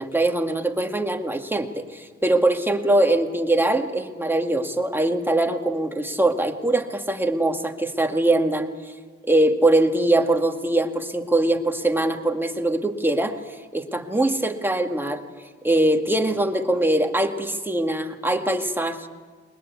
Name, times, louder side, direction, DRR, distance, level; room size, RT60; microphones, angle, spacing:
voice 1, 0.0-8.9 9.3-13.4 13.7-15.2 15.6-19.1, right 1 dB, 5° right, 4 dB, 2.0 m, -22 dB
21.5 x 20.0 x 8.3 m, 1.5 s
cardioid pair, 90°, 30 cm